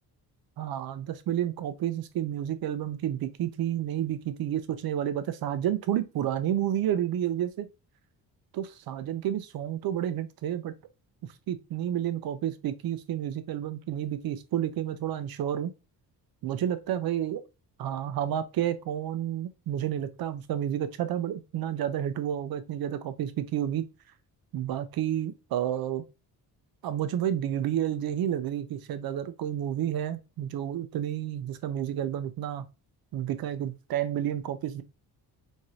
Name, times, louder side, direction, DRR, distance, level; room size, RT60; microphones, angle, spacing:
voice 1, 0.6-7.7 8.5-10.7 11.5-15.7 16.4-17.4 17.8-23.9 24.5-26.0 26.8-32.6 33.1-34.8, right 10 dB, 60° right, 0.6 m, -30 dB
4.8 x 2.8 x 2.7 m
cardioid pair, 140°, 40 cm